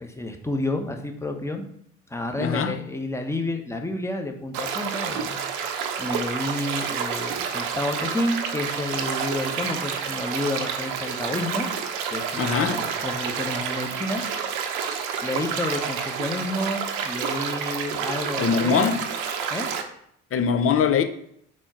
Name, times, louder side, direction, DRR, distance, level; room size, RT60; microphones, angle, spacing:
voice 1, 0.0-1.7 2.1-5.5 6.0-11.7 12.1-14.2 15.2-18.9 19.5-19.7, left 1 dB, 5° left, 1.0 m, -30 dB
voice 2, 2.4-2.8 12.4-12.8 18.4-19.0 20.3-21.0, left 6 dB, 35° left, 0.7 m, -22 dB
sound 1, 4.5-19.8, right 7 dB, 65° right, 0.8 m, -29 dB
4.4 x 4.4 x 5.8 m
figure-of-eight pair, 50°, 37 cm